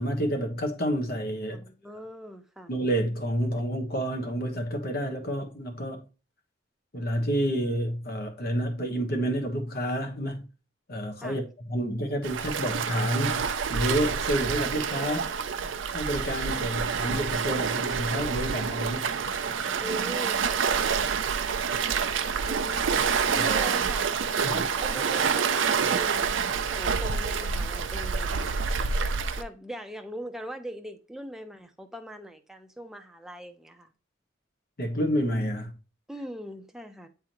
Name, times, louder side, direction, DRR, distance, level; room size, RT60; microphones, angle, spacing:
voice 1, 0.0-1.6 2.7-6.0 6.9-10.5 10.9-15.3 15.9-19.1 23.4-23.5 24.4-24.5 34.8-35.7, equal, 55° left, 1.3 m, -29 dB
voice 2, 1.5-2.7 11.2-11.4 19.8-20.6 22.4-23.0 23.3-24.1 24.4-26.4 26.7-28.7 29.4-33.9 36.1-37.1, equal, 5° right, 0.7 m, -40 dB
Waves surf, 12.2-29.4, right 6 dB, 85° right, 0.5 m, -27 dB
8.6 x 3.6 x 3.0 m
head